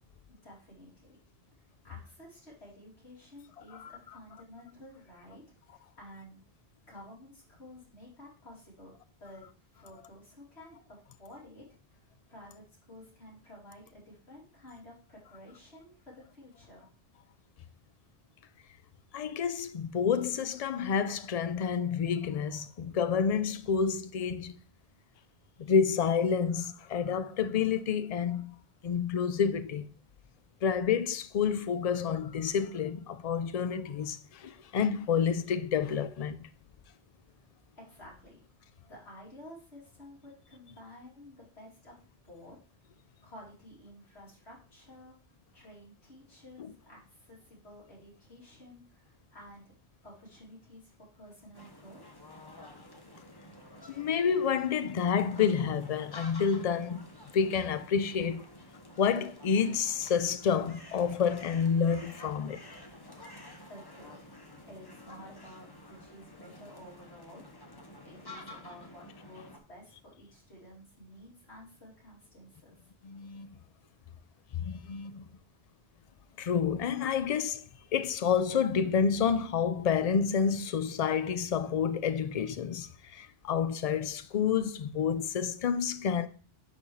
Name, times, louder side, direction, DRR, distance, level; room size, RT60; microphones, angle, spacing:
voice 1, 0.3-1.2 1.5-5.4 5.7-6.4 6.9-8.9 9.2-11.8 12.3-16.9 37.7-38.4 38.9-42.6 43.2-45.1 45.5-49.7 50.0-52.2 63.7-64.2 64.7-67.4 68.0-72.9, left 1 dB, 85° left, 3.2 m, -52 dB
voice 2, 19.1-24.6 25.6-28.6 28.8-29.9 30.6-36.5 46.6-46.7 53.9-58.5 59.0-62.6 73.0-73.5 74.5-75.3 76.4-77.6 77.9-86.3, left 7 dB, 50° left, 0.5 m, -29 dB
sound 1, 51.5-69.6, left 1 dB, 25° left, 0.8 m, -50 dB
11.0 x 4.1 x 3.1 m
omnidirectional pair, 1.1 m